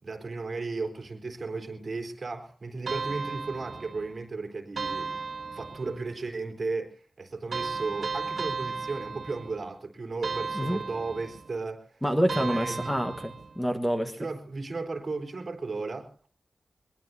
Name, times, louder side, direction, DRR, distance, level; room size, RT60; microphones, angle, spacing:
voice 1, 0.0-5.1 5.5-12.0 12.3-12.9 14.1-16.3, right 3 dB, 50° right, 3.6 m, -35 dB
sound 1, 2.9-4.2 4.8-6.1 7.5-9.7 10.2-11.5 12.3-13.6, right 4 dB, 75° right, 1.3 m, -35 dB
voice 2, 12.0-14.1, equal, 5° left, 1.3 m, -27 dB
22.5 x 21.5 x 2.7 m
wide cardioid pair, 100°, 0 cm